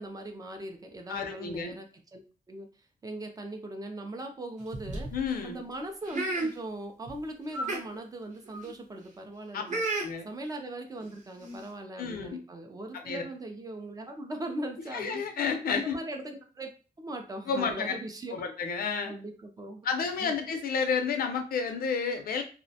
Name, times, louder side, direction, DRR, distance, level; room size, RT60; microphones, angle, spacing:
voice 1, 0.0-2.2 2.5-2.7 3.0-5.1 5.4-9.8 10.2-15.2 15.7-16.7 17.0-18.4 19.1-19.9 20.2-20.3, right 1 dB, 25° right, 4 dB, 0.3 m, -39 dB
voice 2, 1.1-1.8 5.1-5.6 9.5-9.6 10.0-10.3 12.0-12.4 12.9-13.2 14.9-16.0 17.5-17.9 18.3-19.1 19.8-22.4, left 5 dB, 85° left, 6 dB, 0.5 m, -31 dB
sound 1, 4.6-5.2 6.1-6.5 7.1-7.2 7.5-7.8 8.5-8.7 9.7-10.1 11.0-11.1 11.4-11.6, right 2 dB, 55° right, 0.7 m, -32 dB
2.4 x 2.0 x 2.7 m, 0.36 s
wide cardioid pair, 170°, 15 cm